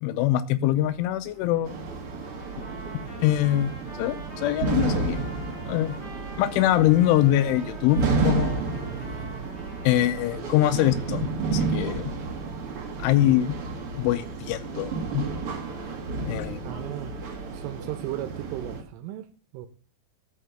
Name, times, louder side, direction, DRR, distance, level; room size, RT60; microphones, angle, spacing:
voice 1, 0.0-1.8 3.2-3.7 4.0-5.2 5.7-6.0 6.4-8.8 9.8-12.1 13.0-13.5 13.9-15.3 16.3-16.6, left 13 dB, 90° left, 3.2 m, -23 dB
sound 1, 0.8-10.8, right 5 dB, 45° right, 1.4 m, -48 dB
sound 2, 1.6-18.8, right 4 dB, 70° right, 1.3 m, -31 dB
Trumpet, 2.2-10.6, equal, 20° left, 1.8 m, -46 dB
voice 2, 16.6-17.1 17.5-19.7, right 13 dB, 90° right, 3.3 m, -36 dB
12.0 x 5.8 x 8.0 m
omnidirectional pair, 5.5 m